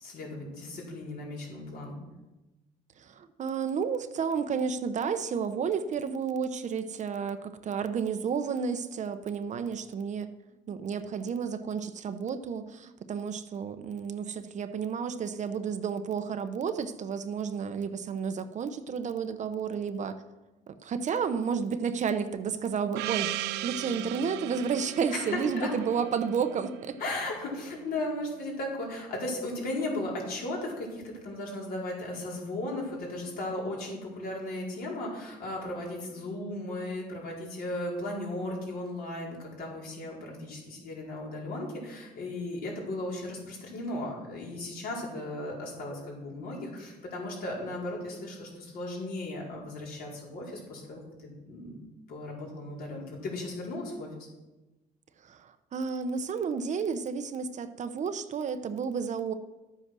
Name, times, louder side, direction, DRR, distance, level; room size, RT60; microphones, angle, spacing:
voice 1, 0.0-2.0 25.1-25.7 27.0-51.8 52.1-54.1, left 1 dB, 65° left, -3 dB, 4.8 m, -36 dB
voice 2, 3.0-10.3 10.7-20.2 20.7-23.3 23.6-27.0 55.2-59.3, right 6 dB, 45° right, 9 dB, 0.9 m, -31 dB
Gong, 22.9-27.7, right 15 dB, 85° right, 0.5 m, -37 dB
12.0 x 8.3 x 6.2 m, 1.1 s
cardioid pair, 110°, 17 cm